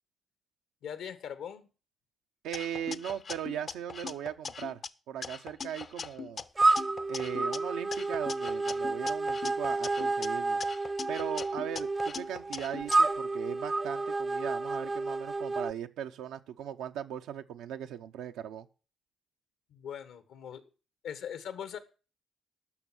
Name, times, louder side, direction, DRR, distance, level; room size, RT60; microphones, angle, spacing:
voice 1, 0.8-1.7 19.7-20.6 21.0-21.8, left 8 dB, 80° left, 1.5 m, -40 dB
voice 2, 2.4-4.8 5.1-6.4 7.1-10.6 11.1-18.7, right 10 dB, 90° right, 0.8 m, -38 dB
sound 1, 2.5-4.9 5.2-7.6 7.9-10.3 10.6-13.0, left 5 dB, 45° left, 0.6 m, -41 dB
sound 2, 6.6-15.7, right 3 dB, 25° right, 0.5 m, -30 dB
12.0 x 6.2 x 7.6 m
cardioid pair, 90°, 0 cm